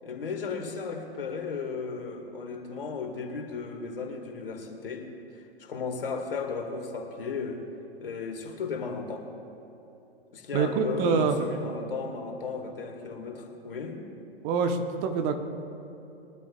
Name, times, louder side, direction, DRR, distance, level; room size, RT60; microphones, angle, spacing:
voice 1, 0.0-5.1 5.3-7.6 8.0-9.3 10.3-14.0, left 4 dB, 60° left, 3 dB, 2.3 m, -35 dB
voice 2, 10.5-11.4 14.4-15.3, right 5 dB, 30° right, 6 dB, 1.1 m, -25 dB
22.5 x 13.0 x 2.5 m, 2.9 s
figure-of-eight pair, 110°, 31 cm